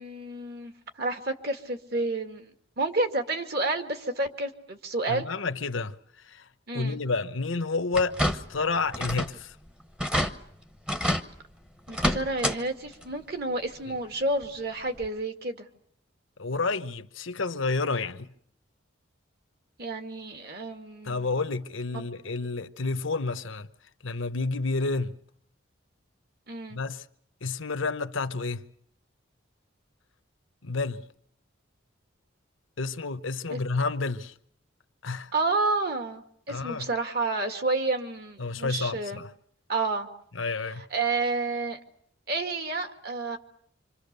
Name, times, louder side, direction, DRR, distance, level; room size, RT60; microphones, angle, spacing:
voice 1, 0.0-2.5 2.8-5.3 6.7-7.0 11.9-15.7 19.8-21.3 21.9-22.0 26.5-26.8 33.5-33.6 35.3-39.2 39.7-40.1 40.9-41.8 42.3-43.4, right 3 dB, 50° right, 2.2 m, -30 dB
voice 2, 5.1-6.0 6.2-6.5 6.7-9.6 13.9-14.0 16.4-18.3 21.0-23.7 24.0-25.2 26.7-27.1 27.4-28.6 30.6-31.1 32.8-34.3 35.0-35.3 36.5-36.9 38.4-39.3 40.3-40.8, left 3 dB, 80° left, 1.1 m, -30 dB
sound 1, 7.9-8.6 8.9-9.4 9.7-9.8 10.0-10.3 10.9-11.3 11.9-12.6 12.9-13.0 14.4-14.5 15.0-15.1, equal, 5° right, 1.0 m, -27 dB
26.5 x 26.5 x 6.9 m
head